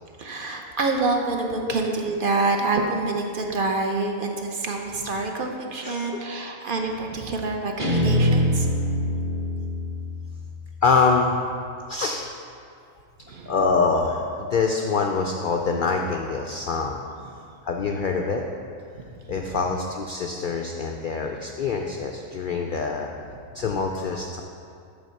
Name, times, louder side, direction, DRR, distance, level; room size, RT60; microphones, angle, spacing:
voice 1, 0.2-8.7 13.3-13.5 19.0-19.1, right 3 dB, 50° right, 2 dB, 0.7 m, -26 dB
voice 2, 5.8-6.2 10.8-11.5 11.9-12.3 13.5-17.0 17.3-18.4 19.3-23.1 23.5-24.4, left 4 dB, 80° left, 2 dB, 0.4 m, -25 dB
Guitar, 7.8-11.0, left 1 dB, 25° right, 1.1 m, -24 dB
8.3 x 4.2 x 6.4 m, 2.4 s
omnidirectional pair, 1.4 m